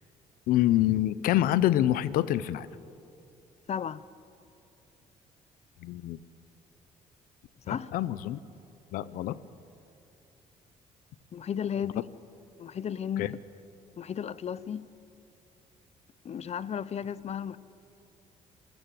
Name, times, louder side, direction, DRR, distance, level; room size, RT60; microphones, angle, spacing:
voice 1, 0.5-2.7 5.8-6.2 7.7-8.4 8.9-9.4 11.8-11.9 13.2-13.3, left 13 dB, 85° left, 0.8 m, -26 dB
voice 2, 3.7-4.0 7.7-7.9 11.3-12.0 12.6-13.4 14.0-14.8 16.2-17.6, left 8 dB, 50° left, 0.8 m, -34 dB
28.0 x 16.0 x 7.9 m
supercardioid pair, 75°, 14 cm